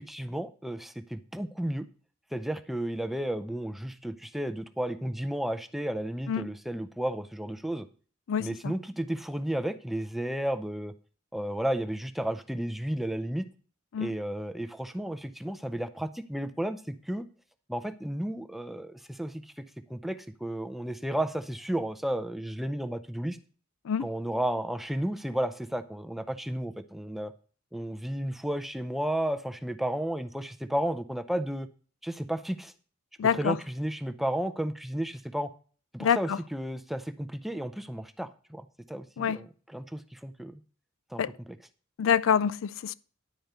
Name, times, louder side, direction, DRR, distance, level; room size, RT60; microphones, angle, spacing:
voice 1, 0.0-1.9 2.3-7.9 8.4-10.9 11.3-13.5 14.0-17.3 17.7-19.4 19.9-23.4 24.0-27.3 27.7-31.7 32.0-32.7 33.3-35.5 35.9-40.6 41.1-41.2, right 1 dB, ahead, 0.5 m, -33 dB
voice 2, 8.3-8.7 13.9-14.1 23.8-24.1 33.2-33.6 36.0-36.4 39.2-39.4 41.2-41.3 42.0-42.9, left 7 dB, 70° left, 0.4 m, -26 dB
10.5 x 4.6 x 6.7 m
head